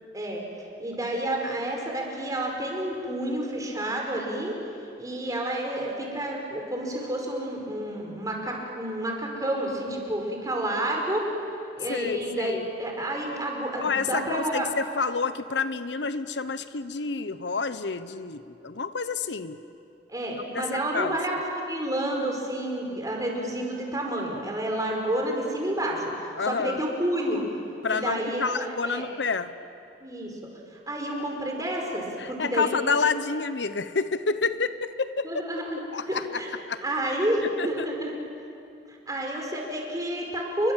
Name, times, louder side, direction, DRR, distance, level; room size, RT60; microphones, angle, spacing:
voice 1, 0.8-4.5 5.0-11.2 11.8-14.7 20.1-26.1 26.4-27.4 27.9-29.0 30.0-30.3 30.9-32.8 35.2-36.5 36.8-38.1 38.9-40.7, right 1 dB, 20° right, 0 dB, 5.0 m, -30 dB
voice 2, 11.9-12.7 13.8-19.6 20.5-21.2 26.4-26.8 27.8-29.5 32.2-35.3 35.9-36.4 36.7-36.8 37.1-37.3 37.6-37.8, left 4 dB, 80° left, 12 dB, 0.9 m, -29 dB
29.5 x 23.5 x 7.5 m, 2.5 s
head